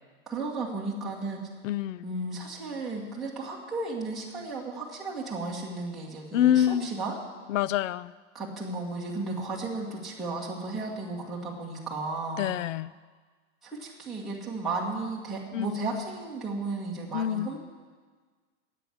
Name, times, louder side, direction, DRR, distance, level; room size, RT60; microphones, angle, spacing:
voice 1, 0.3-1.4 2.0-7.2 8.3-12.5 13.6-17.6, right 3 dB, ahead, -7 dB, 1.4 m, -34 dB
voice 2, 1.6-2.0 6.3-6.9 7.5-8.1 12.4-12.9 15.5-15.7 17.1-17.5, left 11 dB, 85° left, 19 dB, 0.6 m, -26 dB
11.0 x 8.4 x 9.9 m, 1.5 s
supercardioid pair, 175°, 37 cm